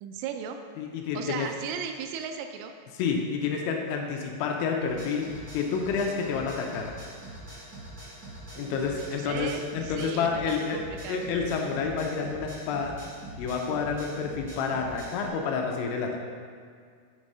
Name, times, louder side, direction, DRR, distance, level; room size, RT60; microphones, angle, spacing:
voice 1, 0.0-0.6 1.1-2.7 8.5-11.3, right 7 dB, 85° right, 6 dB, 3.1 m, -37 dB
voice 2, 0.8-1.5 2.9-6.9 8.6-10.8 11.1-13.0 13.4-16.2, left 5 dB, 80° left, 1 dB, 2.9 m, -29 dB
sound 1, 4.9-15.3, right 1 dB, 50° right, 0.8 m, -44 dB
7.5 x 6.3 x 5.4 m, 2.1 s
omnidirectional pair, 5.8 m